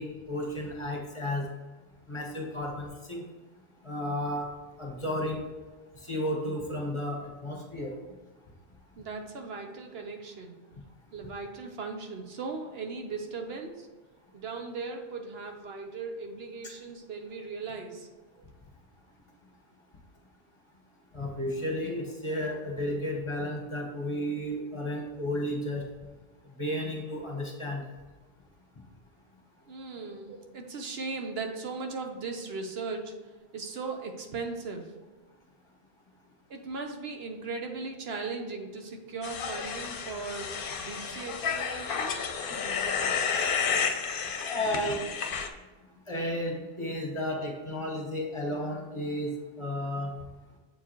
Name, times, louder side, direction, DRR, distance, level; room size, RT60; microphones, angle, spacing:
voice 1, 0.0-1.4 2.1-3.2 3.8-4.5 4.8-5.4 6.0-7.9 21.1-25.8 26.6-27.8 30.3-30.4 44.4-45.0 46.1-50.1, left 1 dB, 30° left, 0 dB, 1.1 m, -33 dB
voice 2, 9.0-10.6 11.1-13.9 14.3-18.1 29.7-33.1 33.5-34.9 36.5-42.3, right 4 dB, 75° right, 3 dB, 1.1 m, -38 dB
sound 1, 39.2-45.5, left 6 dB, 60° left, 0.8 m, -31 dB
7.5 x 4.6 x 3.0 m, 1.3 s
omnidirectional pair, 1.1 m